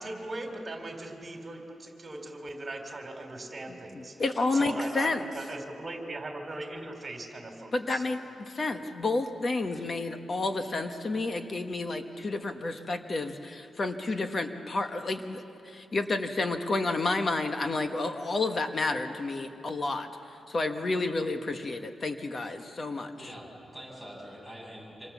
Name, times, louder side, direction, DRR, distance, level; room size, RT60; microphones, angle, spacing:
voice 1, 0.0-4.2 4.5-8.0, right 2 dB, 30° right, 4 dB, 3.6 m, -39 dB
voice 2, 3.9-5.2 7.7-23.3, left 3 dB, 35° left, 6 dB, 1.2 m, -30 dB
voice 3, 23.2-25.1, equal, 15° left, -3 dB, 7.7 m, -45 dB
26.5 x 26.0 x 7.3 m, 2.7 s
wide cardioid pair, 135°, 0 cm